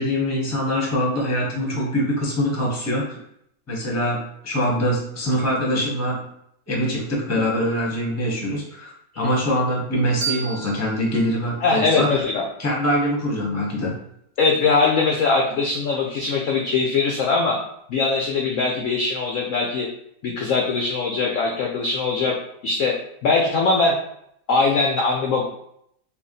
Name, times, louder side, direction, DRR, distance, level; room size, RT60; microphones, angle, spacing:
voice 1, 0.0-3.1 3.7-6.2 6.7-12.2 12.6-13.9, equal, 15° left, -3 dB, 0.7 m, -23 dB
sound 1, 10.2-13.0, right 7 dB, 75° right, 1.2 m, -34 dB
voice 2, 11.6-12.4 14.4-17.6 17.9-19.9 20.2-22.3 22.6-22.9 23.2-23.9 24.5-25.4, left 4 dB, 70° left, 0 dB, 0.8 m, -21 dB
3.4 x 2.4 x 3.8 m, 0.73 s
omnidirectional pair, 1.8 m